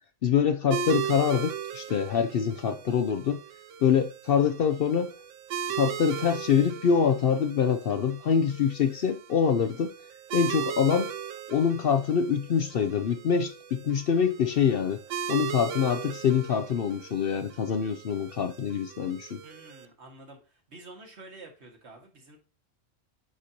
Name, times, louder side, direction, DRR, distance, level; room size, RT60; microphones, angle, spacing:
voice 1, 0.2-3.4 3.8-5.1 5.7-9.9 10.3-11.1 11.5-15.0 15.3-19.4, left 7 dB, 60° left, 0.7 m, -25 dB
sound 1, 0.7-19.9, right 8 dB, 80° right, 1.1 m, -38 dB
voice 2, 19.4-20.4 20.7-22.4, right 2 dB, 60° right, 2.0 m, -48 dB
9.5 x 4.3 x 2.7 m
omnidirectional pair, 1.3 m